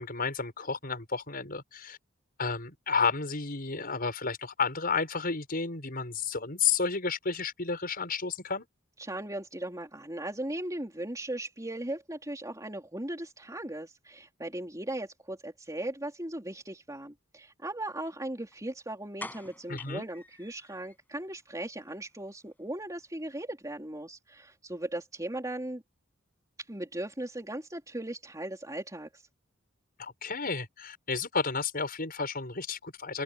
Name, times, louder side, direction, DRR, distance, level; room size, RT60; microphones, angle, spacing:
voice 1, 0.0-2.0 2.4-8.7 19.7-20.0 30.0-33.2, left 5 dB, 50° left, 6.6 m, -31 dB
voice 2, 9.0-25.8 26.7-29.2, right 1 dB, 15° right, 3.9 m, -38 dB
sound 1, 18.5-18.6 19.2-21.0 21.3-21.4 21.8-21.9 22.2-22.3, left 2 dB, 10° left, 7.7 m, -46 dB
open air
head